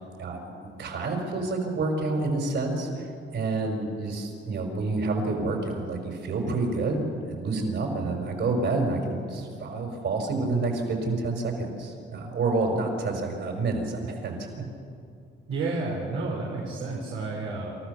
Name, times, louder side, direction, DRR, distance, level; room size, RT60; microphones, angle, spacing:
voice 1, 0.2-3.1 3.3-14.4, right 3 dB, 65° right, 2 dB, 5.5 m, -28 dB
voice 2, 15.5-17.7, right 3 dB, 90° right, -3 dB, 3.8 m, -31 dB
28.0 x 14.5 x 7.0 m, 2.5 s
cardioid pair, 90°, 20 cm